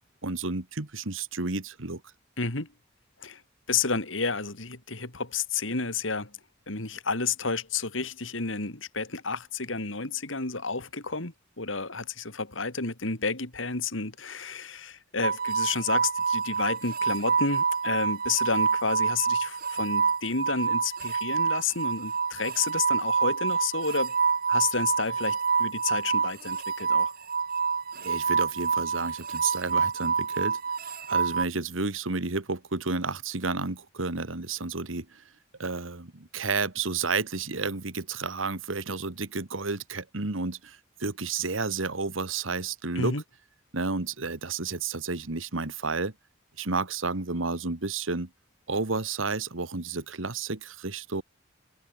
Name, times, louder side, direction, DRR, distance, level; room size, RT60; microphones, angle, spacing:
voice 1, 0.2-2.0 28.0-30.6 31.1-35.2 35.6-43.2 43.7-46.1 46.6-48.3 48.7-51.2, right 4 dB, 85° right, 1.8 m, -31 dB
voice 2, 2.4-2.7 3.2-3.4 3.7-6.3 6.7-24.2 24.5-27.1 42.9-43.2, left 4 dB, 75° left, 3.3 m, -31 dB
sound 1, 15.2-31.5, right 5 dB, 50° right, 2.3 m, -27 dB
head